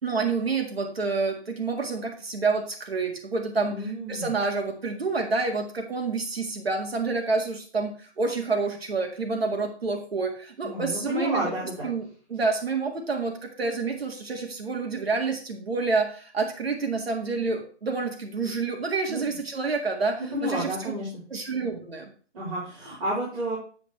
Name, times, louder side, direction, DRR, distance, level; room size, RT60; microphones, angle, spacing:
voice 1, 0.0-11.5 11.8-20.9 21.3-22.1, right 4 dB, 60° right, 3 dB, 1.8 m, -28 dB
voice 2, 3.7-4.3 10.6-11.9 19.1-19.2 20.3-21.2 22.3-23.6, equal, 30° right, -10 dB, 3.9 m, -31 dB
9.0 x 8.3 x 3.1 m, 0.41 s
hypercardioid pair, 175°, 35 cm